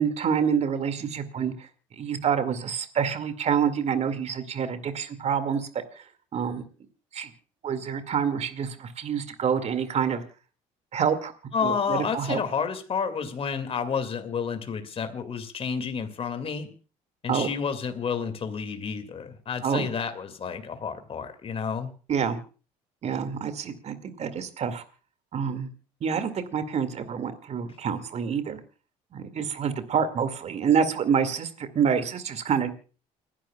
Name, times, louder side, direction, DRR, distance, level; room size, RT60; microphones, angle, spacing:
voice 1, 0.0-1.5 2.0-5.7 6.3-6.6 7.1-7.3 7.6-10.2 10.9-11.3 11.6-12.4 17.3-17.5 19.6-19.9 22.1-22.4 23.0-24.8 25.3-25.7 26.0-28.6 29.1-32.7, right 7 dB, 50° right, 10 dB, 2.2 m, -27 dB
voice 2, 11.5-16.7 17.2-21.9, left 6 dB, 40° left, 8 dB, 2.3 m, -30 dB
29.5 x 11.5 x 2.4 m, 0.35 s
supercardioid pair, 90°, 15 cm